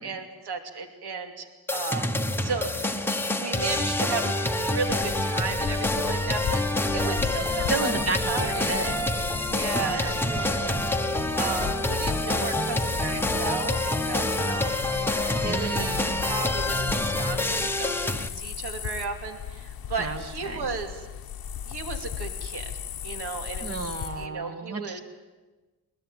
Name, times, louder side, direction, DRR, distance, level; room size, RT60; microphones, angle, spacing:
voice 1, 0.0-1.5 1.7-2.1 2.4-2.9 3.4-7.9 8.3-8.8 9.5-10.8 11.3-14.8 15.4-21.1 21.7-22.7 23.0-23.8 24.2-25.0, right 4 dB, 70° right, 5 dB, 2.8 m, -34 dB
sound 1, 1.7-18.3, left 1 dB, 5° left, 1.0 m, -27 dB
sound 2, 4.8-24.3, left 9 dB, 60° left, 1.0 m, -37 dB
voice 2, 7.7-9.0 9.8-10.2 15.4-16.2 20.0-20.7 23.6-25.0, right 3 dB, 35° right, 8 dB, 1.8 m, -32 dB
21.5 x 21.0 x 9.2 m, 1.2 s
wide cardioid pair, 160°, 40 cm